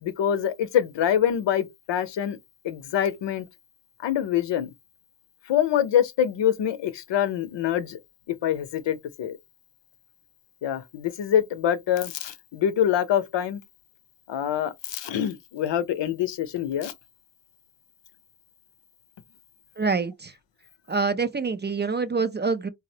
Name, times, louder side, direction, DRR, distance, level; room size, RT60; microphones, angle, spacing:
voice 1, 0.0-2.4 2.6-3.5 4.0-4.7 5.5-8.0 8.4-9.4 10.6-13.6 14.3-16.9, left 9 dB, 80° left, 0.6 m, -25 dB
voice 2, 19.8-20.3 20.9-22.7, right 4 dB, 25° right, 0.4 m, -26 dB
3.8 x 2.0 x 2.7 m
cardioid pair, 95°, 43 cm